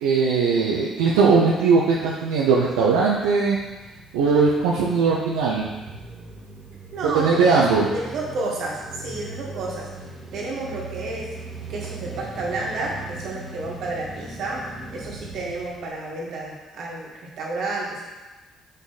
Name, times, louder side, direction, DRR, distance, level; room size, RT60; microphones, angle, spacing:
voice 1, 0.0-3.6 4.1-5.7 7.1-7.9, right 4 dB, 90° right, -4 dB, 0.7 m, -19 dB
sound 1, 3.4-16.5, right 3 dB, 35° right, 1.8 m, -40 dB
voice 2, 6.9-9.9 10.3-11.3 11.7-14.6 14.9-18.0, right 2 dB, 70° right, -3 dB, 1.9 m, -31 dB
6.3 x 5.2 x 4.1 m, 1.2 s
supercardioid pair, 65°, 0 cm